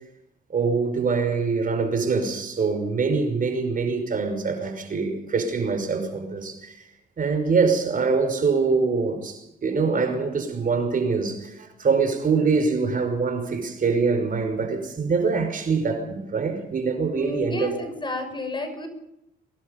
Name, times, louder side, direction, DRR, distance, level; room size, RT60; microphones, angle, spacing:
voice 1, 0.5-6.9 7.2-17.7, right 4 dB, 45° right, 5.7 m, -24 dB
voice 2, 17.1-18.9, left 2 dB, 25° left, 6.6 m, -31 dB
24.5 x 19.5 x 5.4 m
cardioid pair, 90°, 20 cm